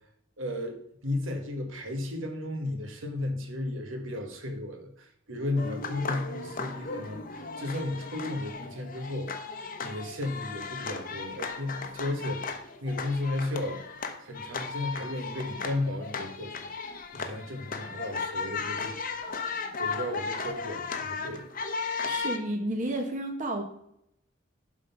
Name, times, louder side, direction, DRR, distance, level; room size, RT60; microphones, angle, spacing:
voice 1, 0.4-0.8 1.0-9.3 9.8-13.8 14.2-16.6 17.1-19.1 19.4-19.5 19.8-21.5, left 2 dB, 75° right, 5 dB, 1.4 m, -34 dB
sound 1, 5.6-22.4, left 4 dB, 45° left, 0.9 m, -36 dB
voice 2, 22.1-23.6, right 1 dB, 40° right, 3 dB, 1.1 m, -31 dB
11.5 x 3.8 x 5.5 m, 0.74 s
head